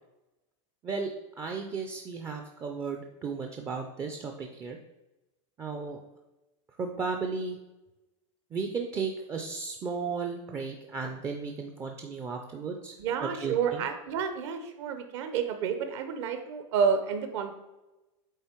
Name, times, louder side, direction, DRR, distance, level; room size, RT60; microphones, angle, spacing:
voice 1, 0.8-4.8 5.6-6.0 6.8-7.6 8.5-12.9 13.2-13.8, right 5 dB, 15° right, 3 dB, 0.4 m, -35 dB
voice 2, 13.0-17.5, right 6 dB, 60° right, 7 dB, 0.8 m, -30 dB
8.0 x 3.7 x 4.4 m, 1.0 s
supercardioid pair, 165°, 17 cm